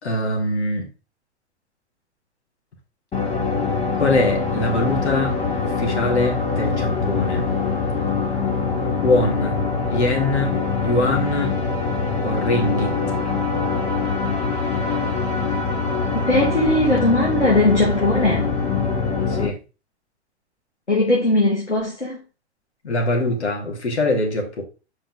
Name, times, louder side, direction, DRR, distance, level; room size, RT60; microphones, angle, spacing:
voice 1, 0.0-0.9 3.9-7.5 9.0-9.6 9.9-11.6 12.2-12.9 19.3-19.6 22.8-24.6, left 2 dB, 70° left, 3.0 m, -23 dB
sound 1, 3.1-19.5, left 4 dB, 20° left, 2.2 m, -23 dB
voice 2, 16.2-18.5 20.9-22.2, left 2 dB, 90° left, 2.3 m, -19 dB
7.5 x 5.2 x 3.7 m
figure-of-eight pair, 105°, 34 cm